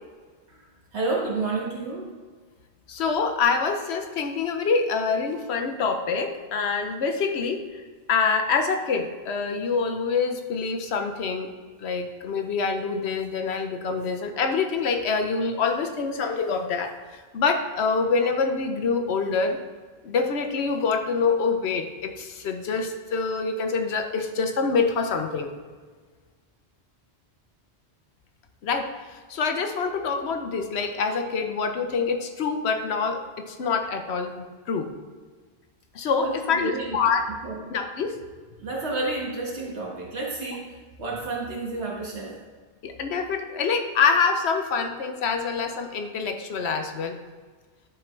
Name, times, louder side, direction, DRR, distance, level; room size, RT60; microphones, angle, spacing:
voice 1, 0.9-2.1 36.2-37.0 37.4-37.6 38.6-40.6 41.0-42.4, right 3 dB, 75° right, -3 dB, 1.9 m, -30 dB
voice 2, 2.9-7.6 8.1-11.5 11.8-19.6 20.0-25.5 28.6-34.9 35.9-37.3 37.7-38.2 42.8-47.2, left 5 dB, 75° left, 6 dB, 1.0 m, -26 dB
10.5 x 4.5 x 3.2 m, 1.5 s
omnidirectional pair, 1.1 m